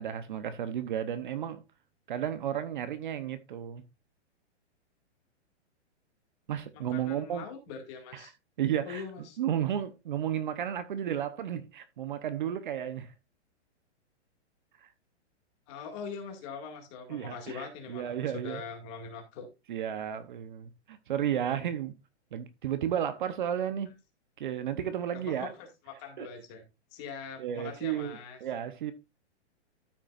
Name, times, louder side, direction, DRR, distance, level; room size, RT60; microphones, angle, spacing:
voice 1, 0.0-1.6 2.1-3.8 6.5-7.5 8.1-8.3 8.6-9.0 9.4-13.1 14.8-14.9 17.1-18.6 19.7-21.9 22.3-23.9 24.4-25.5 26.2-26.3 27.4-28.9, right 10 dB, 45° right, 0.9 m, -33 dB
voice 2, 6.7-8.3 8.8-9.4 15.7-19.5 25.1-26.6 26.9-28.4, left 5 dB, 25° left, 2.1 m, -42 dB
13.0 x 6.0 x 2.5 m
hypercardioid pair, 170°, 34 cm